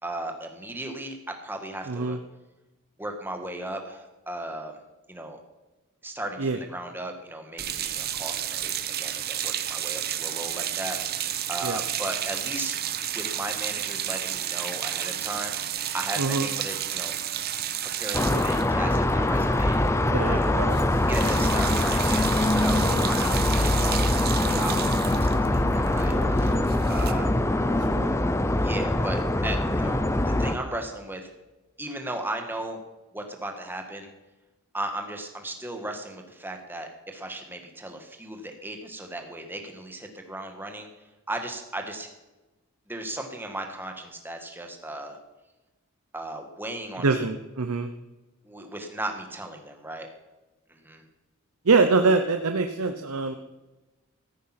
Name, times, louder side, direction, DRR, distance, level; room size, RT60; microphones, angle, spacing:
voice 1, 0.0-2.2 3.0-4.8 5.1-5.4 6.0-12.8 13.1-17.1 17.8-19.8 20.2-20.5 21.1-27.4 28.6-30.0 30.2-31.3 31.8-32.8 33.1-34.1 34.7-40.9 41.3-42.1 42.9-45.2 46.1-47.3 48.4-50.1 50.7-51.0, right 1 dB, 10° right, 4 dB, 1.6 m, -36 dB
voice 2, 1.9-2.2 6.4-6.6 11.6-11.8 16.2-16.5 18.3-18.4 20.1-20.8 22.8-23.0 26.1-26.3 27.9-28.1 47.0-47.9 51.7-53.3, right 4 dB, 85° right, 7 dB, 0.8 m, -24 dB
sound 1, 7.6-20.0 20.2-20.4 20.7-27.1, right 10 dB, 45° right, 0.8 m, -32 dB
sound 2, 18.1-30.5, left 1 dB, 10° left, 0.5 m, -23 dB
14.5 x 8.6 x 5.9 m, 1.1 s
head